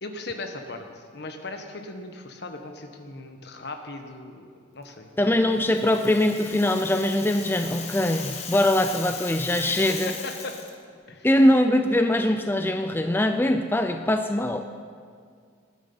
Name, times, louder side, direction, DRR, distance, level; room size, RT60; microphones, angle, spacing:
voice 1, 0.0-5.4 9.7-9.8 10.2-10.3 11.1-11.3, left 2 dB, 60° left, 5 dB, 1.4 m, -38 dB
voice 2, 5.2-10.1 11.2-14.7, left 1 dB, 10° left, 7 dB, 0.4 m, -22 dB
Rattle (instrument), 5.5-10.7, left 5 dB, 35° left, 1.6 m, -38 dB
19.5 x 10.0 x 5.6 m, 2.1 s
head